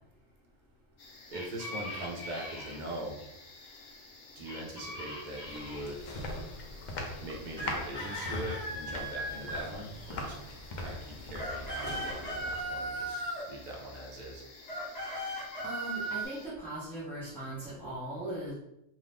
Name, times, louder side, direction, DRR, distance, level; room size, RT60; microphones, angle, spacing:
sound 1, 1.0-16.5, left 3 dB, 80° left, 1.1 m, -53 dB
sound 2, 1.3-2.8 4.4-5.9 7.6-10.3 11.1-13.5 14.6-16.3, right 1 dB, 35° left, 0.9 m, -38 dB
voice 1, 1.3-3.2 4.4-6.1 7.2-10.4 10.8-14.4, right 1 dB, 45° right, -1 dB, 0.7 m, -41 dB
sound 3, 5.1-12.9, left 2 dB, 55° left, 0.5 m, -41 dB
voice 2, 15.6-18.5, right 1 dB, ahead, -11 dB, 0.6 m, -39 dB
2.7 x 2.6 x 3.5 m, 0.87 s
omnidirectional pair, 1.3 m